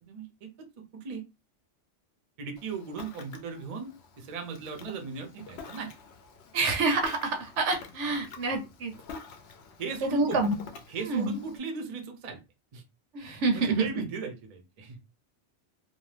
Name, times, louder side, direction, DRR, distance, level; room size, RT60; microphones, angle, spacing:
voice 1, 0.0-0.7 0.9-1.2 2.4-6.0 9.8-10.4 10.9-12.4 12.7-12.8 13.3-15.0, right 4 dB, 45° right, 4 dB, 0.5 m, -37 dB
Ocean, 2.6-11.6, left 5 dB, 70° left, 0.8 m, -47 dB
voice 2, 6.5-8.9 10.0-10.5 11.0-11.4 13.1-13.8, right 3 dB, 80° right, 4 dB, 1.0 m, -27 dB
2.6 x 2.1 x 3.2 m, 0.26 s
omnidirectional pair, 1.2 m